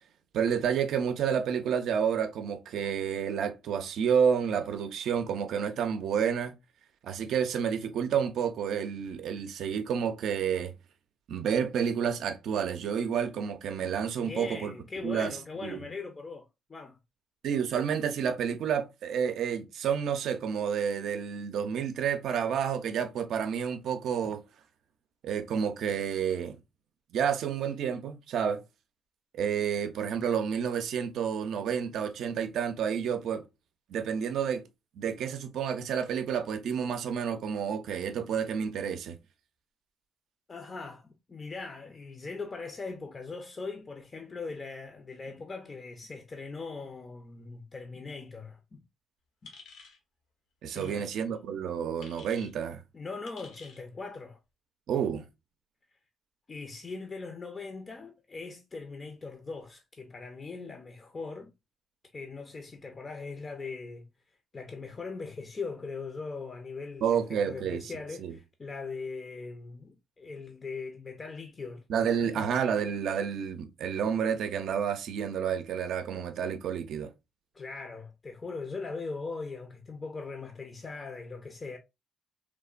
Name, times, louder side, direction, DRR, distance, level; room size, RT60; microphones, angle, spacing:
voice 1, 0.3-6.5 7.0-10.7 11.3-14.7 15.0-15.4 15.6-15.8 17.4-24.4 25.2-26.6 27.1-28.6 29.3-33.5 33.9-34.6 35.0-39.2 50.6-52.8 54.9-55.3 67.0-67.9 68.2-68.4 71.9-77.1, right 7 dB, 75° right, 0.4 m, -30 dB
voice 2, 14.2-17.0 40.5-48.8 49.4-49.5 50.7-51.2 52.9-54.4 56.5-61.5 62.1-64.1 64.5-72.5 77.5-81.8, left 4 dB, 35° left, 0.4 m, -40 dB
sound 1, 49.4-50.0 50.8-51.0 52.0-52.5 53.2-53.8, left 4 dB, 85° left, 0.8 m, -50 dB
3.1 x 2.1 x 2.3 m
cardioid pair, 90°, 0 cm